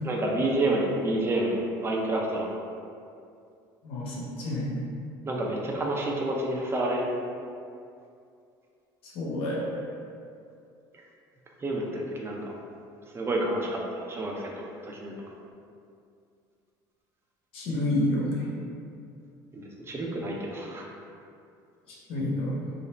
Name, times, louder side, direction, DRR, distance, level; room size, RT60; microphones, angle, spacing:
voice 1, 0.0-2.5 5.3-7.1 11.6-12.4 13.1-14.5 14.8-15.1 19.5-20.9, right 1 dB, 25° right, -1 dB, 0.5 m, -29 dB
voice 2, 3.8-4.8 9.0-9.9 17.5-18.5 21.9-22.6, left 1 dB, 60° left, -4 dB, 0.7 m, -29 dB
2.5 x 2.0 x 3.1 m, 2.4 s
supercardioid pair, 80°, 11 cm